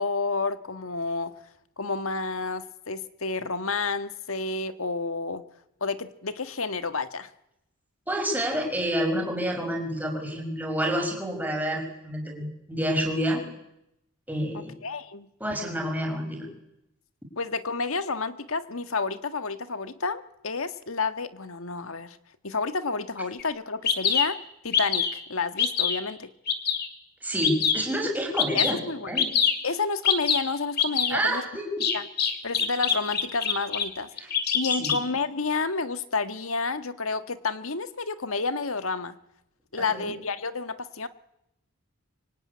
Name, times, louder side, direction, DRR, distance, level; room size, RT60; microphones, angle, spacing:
voice 1, 0.0-1.3 1.8-5.5 5.8-7.3 14.5-15.3 17.4-22.2 22.4-26.3 28.5-29.2 29.6-31.5 31.9-32.0 32.4-34.1 34.5-39.1 39.7-41.1, left 4 dB, 75° left, 10 dB, 1.6 m, -30 dB
voice 2, 8.1-13.4 14.3-14.7 15.4-16.5 27.2-28.8 29.1-29.3 31.1-31.9 34.2-34.3 34.8-35.0 39.8-40.1, equal, 10° right, 2 dB, 5.8 m, -28 dB
Bird vocalization bird call bird song, 23.4-23.5 23.9-24.3 24.7-25.2 25.6-26.0 26.5-26.9 27.4-27.9 28.4-28.7 29.2-29.6 30.0-30.4 30.8-31.1 31.8-33.9 34.2-35.0, left 7 dB, 45° left, 2.7 m, -24 dB
25.0 x 24.0 x 9.8 m, 0.83 s
head